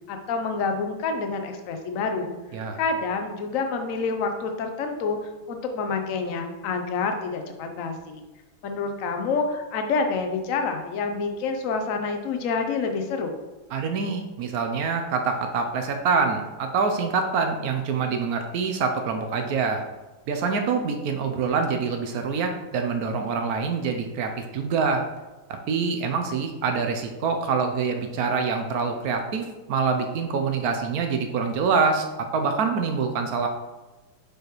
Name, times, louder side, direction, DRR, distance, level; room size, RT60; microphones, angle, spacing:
voice 1, 0.1-2.3 2.8-8.2 8.6-13.3, left 4 dB, 65° left, 5 dB, 0.8 m, -28 dB
voice 2, 13.7-19.8 20.3-25.0 25.7-33.5, right 5 dB, 75° right, 5 dB, 0.8 m, -25 dB
6.5 x 4.9 x 3.0 m, 1.1 s
omnidirectional pair, 2.2 m